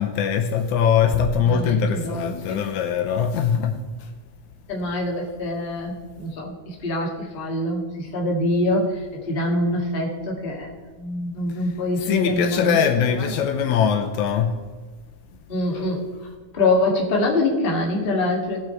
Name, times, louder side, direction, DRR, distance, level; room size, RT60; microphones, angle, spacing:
voice 1, 0.0-4.1 12.0-14.5, left 7 dB, 80° left, 5 dB, 2.0 m, -22 dB
voice 2, 1.4-2.6 4.7-12.8 13.2-13.3 15.5-16.3 16.5-18.6, left 1 dB, 25° left, -1 dB, 1.3 m, -25 dB
18.0 x 6.2 x 4.5 m, 1.4 s
omnidirectional pair, 3.6 m